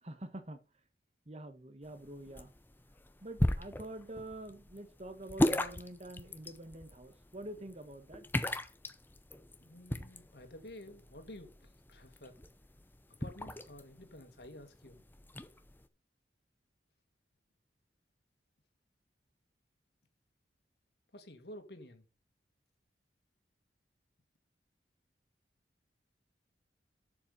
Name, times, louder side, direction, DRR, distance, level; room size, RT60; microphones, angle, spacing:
voice 1, 0.0-0.6 1.2-2.5 3.2-8.3, right 1 dB, 35° right, 1.4 m, -46 dB
sound 1, 1.8-15.9, left 1 dB, 10° left, 0.7 m, -38 dB
voice 2, 9.5-12.4 13.2-15.0 21.1-22.1, left 1 dB, 65° left, 2.1 m, -51 dB
7.5 x 7.0 x 5.5 m
head